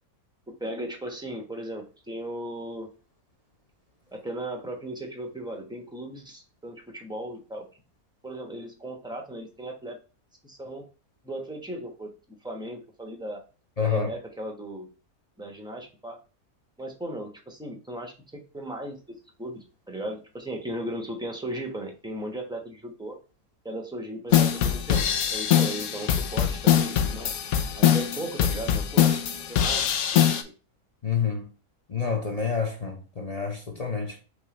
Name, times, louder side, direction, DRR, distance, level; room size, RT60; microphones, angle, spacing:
voice 1, 0.5-2.9 4.1-7.7 8.2-10.0 10.4-10.8 11.2-13.4 13.8-14.9 15.4-16.2 16.8-23.2 23.6-27.3 27.7-30.5, right 1 dB, 5° right, 0.8 m, -37 dB
voice 2, 13.8-14.1 31.0-31.5 31.9-34.2, left 6 dB, 35° left, 0.6 m, -28 dB
sound 1, 24.3-30.4, left 10 dB, 85° left, 1.1 m, -23 dB
5.4 x 3.3 x 3.0 m
omnidirectional pair, 1.5 m